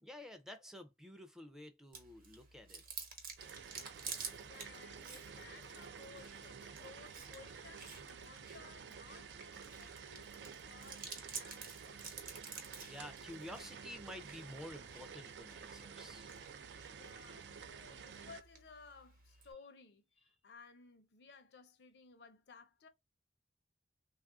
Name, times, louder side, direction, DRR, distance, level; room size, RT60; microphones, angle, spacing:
voice 1, 0.0-2.8 12.9-16.3, left 1 dB, 5° right, 0.4 m, -51 dB
Chewing mastication, 1.9-19.5, right 5 dB, 50° right, 0.9 m, -52 dB
sound 1, 3.4-18.4, right 6 dB, 75° right, 0.4 m, -51 dB
sound 2, 4.1-7.1, equal, 25° right, 0.8 m, -65 dB
voice 2, 4.5-12.2 16.9-22.9, left 4 dB, 75° left, 0.6 m, -58 dB
3.2 x 2.4 x 2.3 m
head